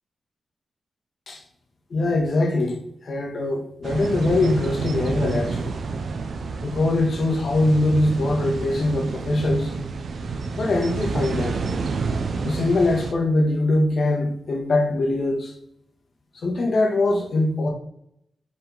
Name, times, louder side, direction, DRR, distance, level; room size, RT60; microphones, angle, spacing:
voice 1, 1.9-5.8 6.6-9.7 10.6-11.6 12.4-15.5 16.4-17.7, left 2 dB, 50° left, 1 dB, 1.8 m, -22 dB
sound 1, 3.8-13.1, right 4 dB, 55° right, 0.7 m, -29 dB
5.3 x 5.1 x 5.7 m, 0.72 s
wide cardioid pair, 175°, 0 cm